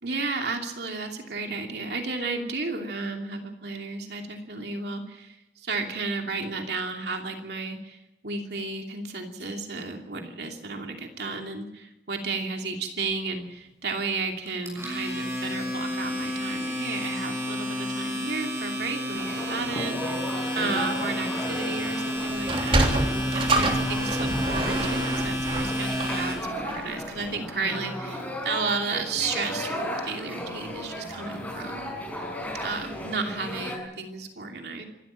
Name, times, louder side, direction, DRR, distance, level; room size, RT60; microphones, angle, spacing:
voice 1, 0.0-20.3 20.5-31.9 32.5-34.8, right 3 dB, 70° right, 3 dB, 2.8 m, -33 dB
Domestic sounds home sounds, 14.5-26.3, equal, 15° right, 6.8 m, -30 dB
sound 1, 19.1-33.8, left 1 dB, 10° left, 5.3 m, -35 dB
Sliding door, 22.4-27.0, right 2 dB, 30° right, 3.2 m, -27 dB
26.5 x 13.5 x 9.0 m, 0.93 s
head